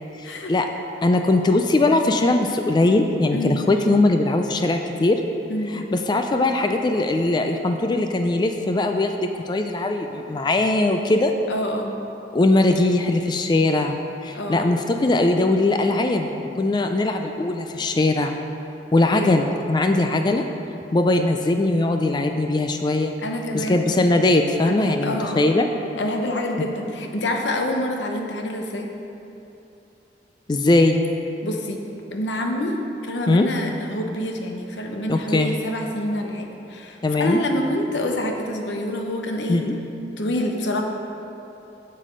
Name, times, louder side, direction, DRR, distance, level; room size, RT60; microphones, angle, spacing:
voice 1, 0.2-0.7 1.0-5.2 5.7-11.3 12.3-14.0 14.2-18.4 18.9-20.5 20.9-23.1 23.5-25.7 30.5-31.0 33.3-33.5 35.1-35.6 37.0-37.4 39.5-39.8, left 2 dB, 25° left, 5 dB, 0.3 m, -20 dB
voice 2, 11.5-11.9 14.3-14.7 19.1-19.4 23.2-23.9 24.7-25.5 26.0-28.9 31.4-31.8 32.1-32.7 33.0-39.6 40.2-40.8, left 1 dB, 85° left, 3 dB, 0.9 m, -27 dB
7.4 x 6.6 x 5.2 m, 2.9 s
head